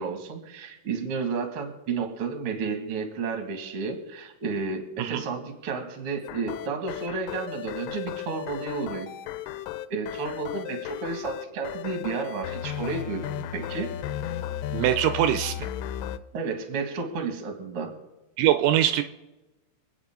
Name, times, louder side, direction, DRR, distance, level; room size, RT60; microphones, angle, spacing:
voice 1, 0.0-9.1 9.9-13.9 16.3-17.9, right 4 dB, 50° right, 4 dB, 1.8 m, -32 dB
sound 1, 6.2-16.2, left 11 dB, 90° left, 3.2 m, -35 dB
voice 2, 14.7-15.7 18.4-19.0, right 12 dB, 80° right, 9 dB, 2.9 m, -22 dB
26.5 x 9.0 x 3.7 m, 1.0 s
omnidirectional pair, 5.6 m